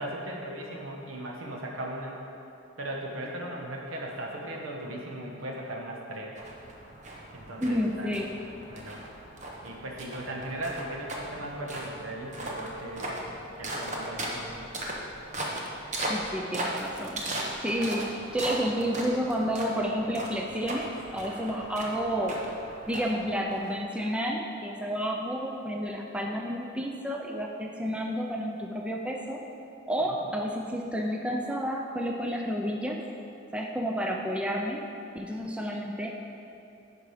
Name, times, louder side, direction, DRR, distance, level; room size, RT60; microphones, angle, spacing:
voice 1, 0.0-2.2 2.8-6.4 7.3-8.2 8.7-9.0 9.6-13.2 13.6-14.7 17.7-18.0 30.1-30.2, right 1 dB, 75° right, -1 dB, 1.3 m, -38 dB
sound 1, 6.4-24.1, right 1 dB, 35° right, 1.0 m, -38 dB
voice 2, 7.6-8.3 16.1-17.3 17.6-22.3 22.9-29.4 29.9-33.0 33.5-34.8 35.1-36.1, equal, 5° right, 0 dB, 0.4 m, -30 dB
10.0 x 5.0 x 4.9 m, 2.8 s
head